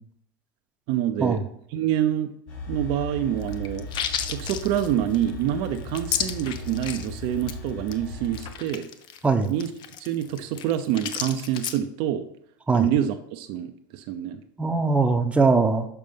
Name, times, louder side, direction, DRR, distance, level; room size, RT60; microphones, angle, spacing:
voice 1, 0.9-1.4 1.7-2.3 2.7-3.9 4.3-8.9 9.5-9.7 10.0-12.3 12.7-14.4, right 11 dB, 55° right, 7 dB, 0.6 m, -26 dB
sound 1, 2.5-8.5, left 1 dB, 60° left, 3.3 m, -37 dB
sound 2, 3.4-7.1 7.4-7.6 7.9-8.0 8.2-11.8, left 9 dB, 40° left, 0.7 m, -32 dB
voice 2, 14.6-15.9, right 4 dB, 10° right, 4 dB, 0.9 m, -21 dB
6.8 x 5.2 x 5.3 m, 0.73 s
hypercardioid pair, 105°, 12 cm